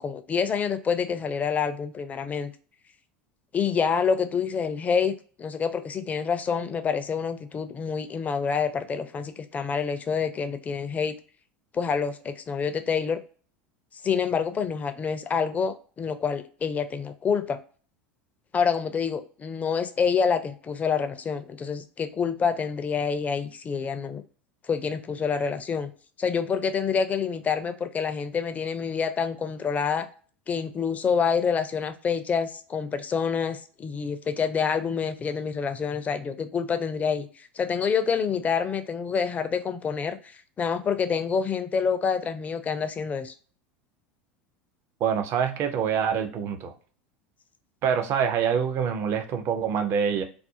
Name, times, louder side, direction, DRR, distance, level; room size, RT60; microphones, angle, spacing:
voice 1, 0.0-2.5 3.5-11.2 11.7-13.2 14.0-17.6 18.5-24.2 24.7-25.9 26.2-30.1 30.5-43.3, left 6 dB, 25° left, 9 dB, 0.4 m, -27 dB
voice 2, 45.0-46.7 47.8-50.2, right 7 dB, 45° right, 7 dB, 0.5 m, -25 dB
2.4 x 2.0 x 2.6 m, 0.41 s
hypercardioid pair, 80°, 6 cm